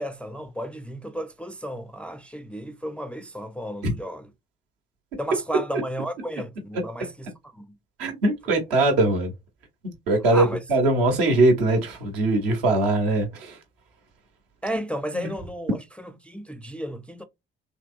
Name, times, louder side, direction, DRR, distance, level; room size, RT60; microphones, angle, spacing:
voice 1, 0.0-4.3 5.2-7.8 10.3-10.6 14.6-17.2, equal, 5° left, 0.4 m, -33 dB
voice 2, 8.0-9.3 10.1-13.6 15.1-15.3, right 2 dB, 70° right, 1.0 m, -21 dB
3.3 x 2.7 x 2.5 m
figure-of-eight pair, 45°, 29 cm